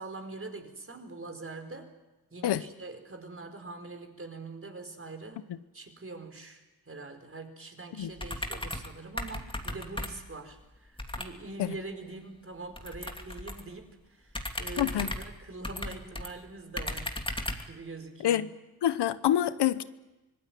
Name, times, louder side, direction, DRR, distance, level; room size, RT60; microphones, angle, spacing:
voice 1, 0.0-1.9 2.3-5.4 5.7-17.2 17.7-18.5, right 3 dB, 35° right, 4.9 m, -43 dB
sound 1, 8.2-8.9 9.2-10.3 11.0-11.3 12.7-13.7 14.3-16.3 16.8-17.7, left 1 dB, 15° left, 2.7 m, -36 dB
voice 2, 14.8-15.1 18.2-18.5 18.8-19.8, left 11 dB, 85° left, 1.0 m, -26 dB
25.5 x 19.0 x 9.4 m
cardioid pair, 60°, 40 cm